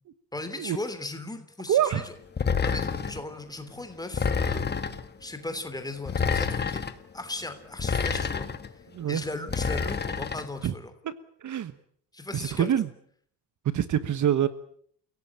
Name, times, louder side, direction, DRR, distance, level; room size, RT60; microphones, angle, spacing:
voice 1, 0.3-2.1 2.6-4.7 5.2-6.8 7.1-8.5 9.1-10.9 12.1-12.7, left 2 dB, 10° left, 8 dB, 3.2 m, -37 dB
voice 2, 1.7-2.1 8.9-9.2 10.6-10.7 11.0-11.1 11.4-11.8 12.3-12.9 13.7-14.5, right 10 dB, 50° right, 14 dB, 1.2 m, -25 dB
sound 1, 2.4-3.2 4.1-5.1 6.1-6.9 7.8-8.7 9.5-10.5, left 6 dB, 25° left, 1.6 m, -28 dB
29.5 x 17.0 x 8.8 m, 0.64 s
cardioid pair, 160°, 39 cm